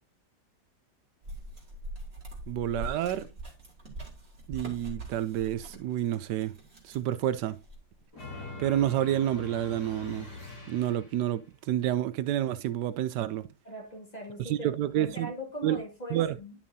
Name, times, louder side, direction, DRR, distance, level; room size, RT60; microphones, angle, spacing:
sound 1, 1.2-8.0, right 1 dB, 35° right, 2.9 m, -43 dB
voice 1, 2.5-3.3 4.5-6.5 6.8-7.6 8.6-10.3 10.7-13.5 14.4-15.3 15.6-15.8 16.1-16.4, right 12 dB, 80° right, 1.1 m, -29 dB
sound 2, 8.1-11.3, left 3 dB, 60° left, 6.4 m, -43 dB
voice 2, 13.7-14.7 15.0-16.5, equal, 25° left, 1.8 m, -40 dB
11.0 x 6.0 x 2.7 m
omnidirectional pair, 1.8 m